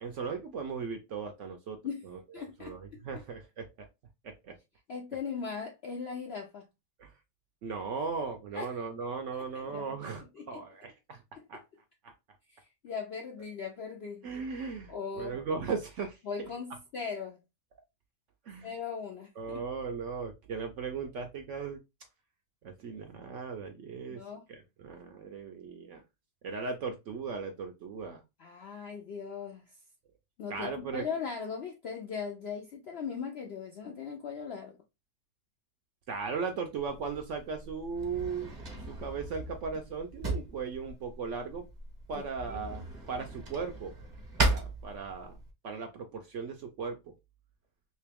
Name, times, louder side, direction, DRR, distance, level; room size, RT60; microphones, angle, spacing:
voice 1, 0.0-1.8 2.0-2.2 2.6-3.9 4.2-4.6 7.0-7.1 7.6-11.2 11.5-11.6 12.0-12.1 14.2-16.2 18.5-18.7 19.4-21.8 22.6-24.2 24.5-26.0 26.4-28.2 30.5-31.1 36.1-38.5 38.9-41.7 42.1-43.9 44.4-45.4 45.6-47.0, right 5 dB, 65° right, 0.7 m, -37 dB
voice 2, 2.3-2.8 4.9-6.7 8.5-8.7 9.5-9.9 10.4-10.6 11.5-11.6 12.5-14.3 14.9-15.4 16.2-17.4 18.6-19.7 24.1-24.4 28.4-29.7 30.4-34.8 42.1-42.7, left 6 dB, 65° left, 0.6 m, -39 dB
Drawer open or close, 36.8-45.5, right 2 dB, 35° right, 0.8 m, -37 dB
3.0 x 2.9 x 3.4 m
omnidirectional pair, 1.7 m